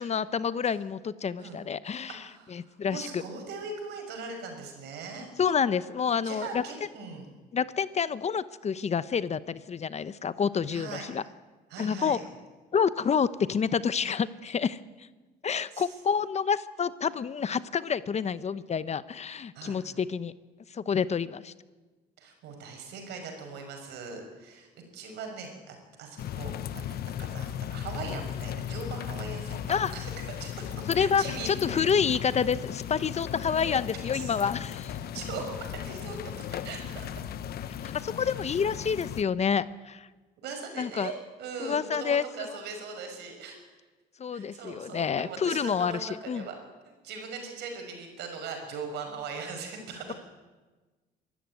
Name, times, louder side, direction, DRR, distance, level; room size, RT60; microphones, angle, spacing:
voice 1, 0.0-3.2 5.4-6.6 7.5-11.2 11.8-12.2 12.7-14.8 15.4-20.3 20.7-21.5 29.7-29.9 30.9-34.9 37.8-40.1 40.8-41.1 41.6-42.6 44.2-46.5, left 6 dB, 40° left, 15 dB, 1.0 m, -28 dB
voice 2, 2.2-5.3 6.2-7.3 10.7-11.1 11.7-12.2 15.7-15.9 19.5-19.8 22.2-26.9 27.2-30.1 30.4-31.9 34.1-34.3 35.1-36.2 36.5-37.3 40.4-41.1 41.4-43.6 44.3-46.6 46.9-50.0, right 4 dB, 80° right, 4 dB, 5.9 m, -40 dB
sound 1, 26.2-39.2, left 10 dB, 65° left, 1.1 m, -36 dB
24.0 x 13.5 x 9.6 m, 1.3 s
supercardioid pair, 80°, 17 cm